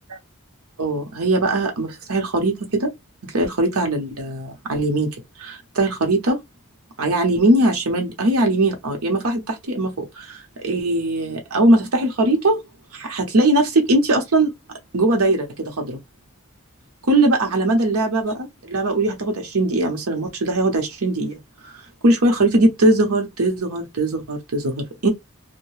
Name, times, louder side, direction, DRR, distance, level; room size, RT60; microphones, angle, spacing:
voice 1, 0.8-2.9 3.2-5.1 5.4-6.4 7.0-12.6 12.9-14.5 14.9-16.0 17.1-21.4 21.6-25.1, right 2 dB, 85° right, 0.8 m, -20 dB
2.6 x 2.1 x 3.1 m
head